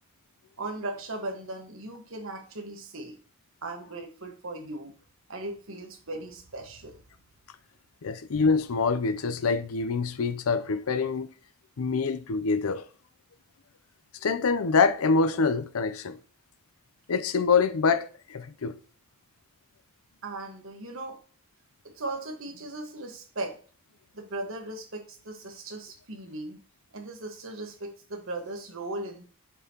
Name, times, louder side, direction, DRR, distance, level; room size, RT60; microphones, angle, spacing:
voice 1, 0.6-3.2 3.6-4.9 5.3-7.0 20.2-21.2 21.9-23.5 24.1-26.6 26.9-29.2, right 2 dB, 65° right, 1.4 m, -37 dB
voice 2, 8.0-11.3 11.8-12.8 14.2-16.2 17.1-18.8, left 4 dB, 75° left, 0.5 m, -25 dB
7.2 x 5.5 x 2.9 m
head